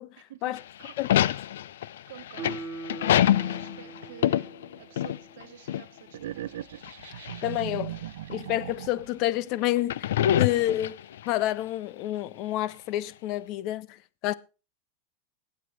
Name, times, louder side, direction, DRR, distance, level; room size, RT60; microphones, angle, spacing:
sound 1, 0.6-5.4 5.7-5.8 6.8-7.6 8.3-8.4 9.8-11.3, left 11 dB, 90° left, 0.5 m, -25 dB
voice 1, 1.0-1.3 7.4-8.0 8.3-10.1 10.4-11.0 11.3-14.0 14.2-14.3, left 14 dB, 35° left, 0.5 m, -28 dB
voice 2, 2.1-2.5 3.3-6.6, right 11 dB, 65° right, 1.4 m, -49 dB
Guitar, 2.3-5.6 6.0-6.1, right 3 dB, 5° right, 4.7 m, -42 dB
sound 2, 6.1-9.2, right 13 dB, 90° right, 0.5 m, -38 dB
21.0 x 7.9 x 3.3 m
supercardioid pair, 175°, 0 cm